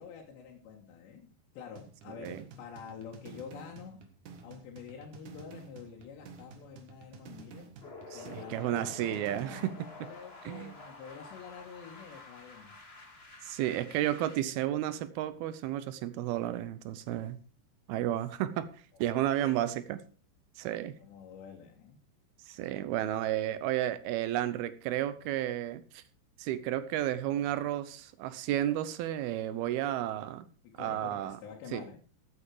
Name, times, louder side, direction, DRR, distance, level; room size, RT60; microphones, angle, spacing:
voice 1, 0.0-4.0 4.4-7.7 8.2-12.8 17.1-17.2 18.1-18.2 19.2-19.7 21.0-22.0 30.6-32.0, left 7 dB, 85° left, -1 dB, 3.8 m, -48 dB
sound 1, 1.8-9.8, right 5 dB, 60° right, 2.5 m, -51 dB
sound 2, 7.8-14.4, left 3 dB, 55° left, 0.6 m, -49 dB
voice 2, 8.1-9.9 10.4-10.7 13.4-17.4 17.9-18.7 19.0-20.0 20.6-21.0 22.5-26.0 26.4-30.5 30.8-31.4 31.7-31.9, right 12 dB, 80° right, 13 dB, 2.5 m, -32 dB
13.5 x 8.7 x 4.8 m, 0.39 s
omnidirectional pair, 4.8 m